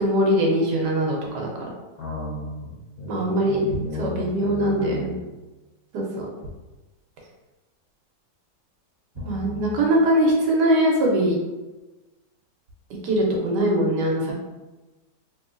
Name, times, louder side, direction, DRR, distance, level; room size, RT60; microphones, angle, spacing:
voice 1, 0.0-1.5 3.1-3.6 4.0-5.1 5.9-6.3 9.2-11.4 13.0-14.3, right 1 dB, 75° right, -1 dB, 1.3 m, -21 dB
voice 2, 2.0-2.7 3.0-5.2 9.2-9.7, left 2 dB, 65° left, -5 dB, 0.9 m, -34 dB
3.3 x 3.1 x 2.4 m, 1.1 s
omnidirectional pair, 1.9 m